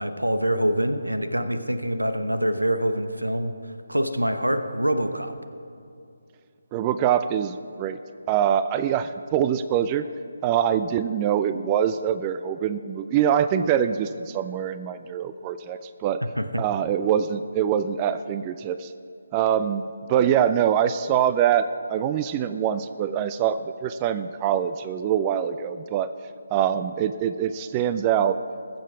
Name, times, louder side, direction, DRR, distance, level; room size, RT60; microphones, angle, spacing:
voice 1, 0.0-3.5 3.9-5.3 16.4-16.6, equal, 90° right, 9 dB, 1.0 m, -25 dB
voice 2, 6.7-8.0 8.3-10.1 10.4-16.2 16.6-18.9 19.3-19.8 20.1-26.1 26.5-28.4, right 9 dB, 20° right, 12 dB, 0.3 m, -24 dB
20.5 x 7.5 x 4.6 m, 2.6 s
figure-of-eight pair, 150°, 0 cm